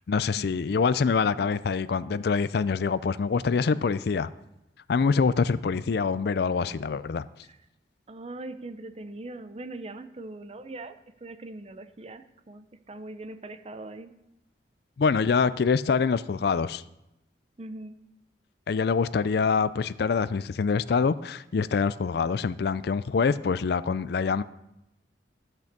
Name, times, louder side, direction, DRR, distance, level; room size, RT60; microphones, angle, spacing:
voice 1, 0.1-4.3 4.9-7.3 15.0-16.8 18.7-24.4, left 5 dB, 60° left, 16 dB, 0.4 m, -25 dB
voice 2, 8.1-14.1 17.6-17.9, right 2 dB, 35° right, 10 dB, 0.6 m, -41 dB
13.0 x 6.0 x 6.7 m, 0.87 s
head